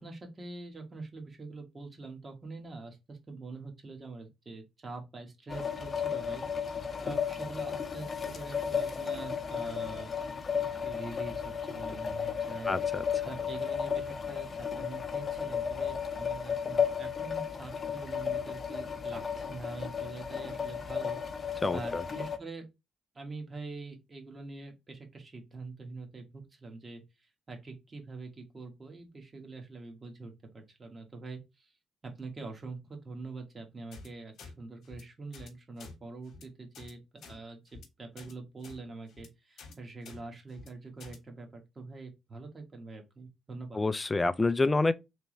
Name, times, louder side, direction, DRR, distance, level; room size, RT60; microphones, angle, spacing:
voice 1, 0.0-6.4 7.0-10.1 10.6-12.7 13.2-22.6 23.1-27.0 27.5-31.7 32.0-43.8, right 3 dB, 30° right, 1.3 m, -45 dB
sound 1, 5.5-22.4, left 7 dB, 40° left, 0.7 m, -34 dB
voice 2, 12.7-13.0 21.6-22.0 43.7-44.9, left 3 dB, 20° left, 0.3 m, -27 dB
sound 2, 33.9-34.1 34.4-34.5 34.8-35.0 35.3-35.5 35.8-35.9 36.2-36.4 36.7-36.9 37.2-37.4 37.7-37.9 38.2-38.3 38.6-38.8 39.1-39.3 39.6-39.7 40.0-40.2 40.5-40.7 41.0-41.2, left 4 dB, 70° left, 1.0 m, -49 dB
3.4 x 3.0 x 3.1 m
cardioid pair, 90°, 0 cm